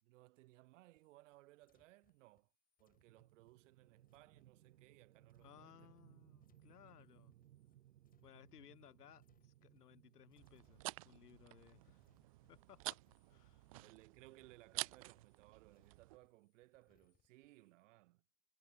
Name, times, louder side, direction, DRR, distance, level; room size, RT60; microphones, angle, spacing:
voice 1, 0.0-2.5 2.8-5.9 13.8-18.2, right 19 dB, 50° right, 3.2 m, -64 dB
sound 1, 0.6-8.9 9.2-10.0 10.3-17.8, left 8 dB, 20° left, 5.7 m, -82 dB
sound 2, 3.0-15.2, right 12 dB, 70° right, 1.2 m, -67 dB
voice 2, 5.4-7.3 8.2-12.1 12.5-13.0 13.3-13.7, left 10 dB, 75° left, 2.2 m, -63 dB
sound 3, 10.4-16.2, right 21 dB, 25° right, 0.4 m, -50 dB
hypercardioid pair, 130°, 47 cm